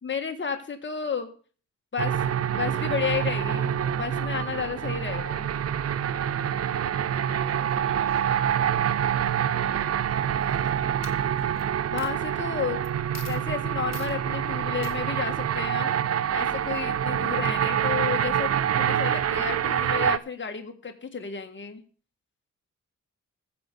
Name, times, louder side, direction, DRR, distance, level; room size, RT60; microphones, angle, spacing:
voice 1, 0.0-1.3 1.9-5.5 11.9-12.8 13.3-18.5 18.8-21.8, left 6 dB, 35° left, 5 dB, 1.7 m, -32 dB
sound 1, 2.0-20.2, right 9 dB, 50° right, 0.5 m, -26 dB
voice 2, 7.3-11.0, right 6 dB, 80° right, 7 dB, 2.3 m, -45 dB
Coin (dropping), 10.4-10.7 11.0-11.6 12.0-12.1 12.8-12.9 13.1-13.4 13.9-14.1 14.8-15.0, left 6 dB, 55° left, 1.5 m, -42 dB
14.5 x 5.2 x 6.8 m, 0.41 s
cardioid pair, 70°, 32 cm